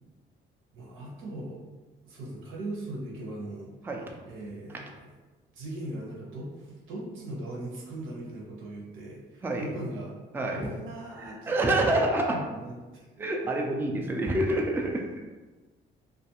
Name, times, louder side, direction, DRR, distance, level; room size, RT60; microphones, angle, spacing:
voice 1, 0.7-1.6 2.0-3.7 4.3-4.9 5.5-10.2 10.5-11.7 12.3-13.0, right 1 dB, 90° right, -3 dB, 0.8 m, -39 dB
voice 2, 10.3-10.7 11.2-12.4 13.2-15.0, right 1 dB, 10° right, 1 dB, 0.3 m, -27 dB
2.3 x 2.3 x 2.8 m, 1.2 s
cardioid pair, 90°, 20 cm